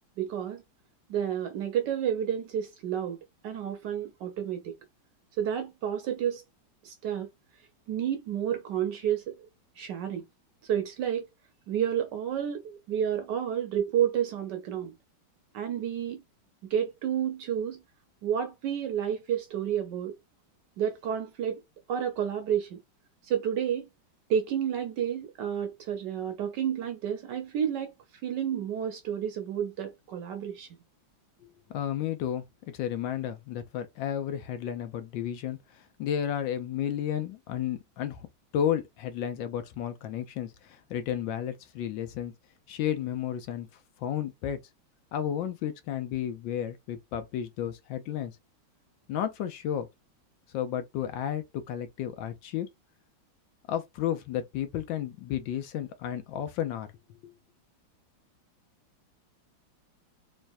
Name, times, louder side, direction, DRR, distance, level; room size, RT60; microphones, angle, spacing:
voice 1, 0.2-0.6 1.1-3.2 3.4-4.7 5.4-6.4 6.8-7.3 7.9-9.5 9.8-10.2 10.6-11.3 11.7-14.9 15.5-16.2 16.7-17.8 18.2-20.2 20.8-21.6 21.9-22.8 23.2-23.9 24.3-27.9 28.2-30.7, right 9 dB, 70° right, 1.1 m, -30 dB
voice 2, 31.7-38.3 38.5-42.3 42.7-43.7 44.0-44.6 45.1-48.4 49.1-49.9 50.5-52.7 53.7-56.9 57.2-57.3, left 10 dB, 75° left, 1.2 m, -32 dB
3.4 x 3.1 x 2.5 m
omnidirectional pair, 2.3 m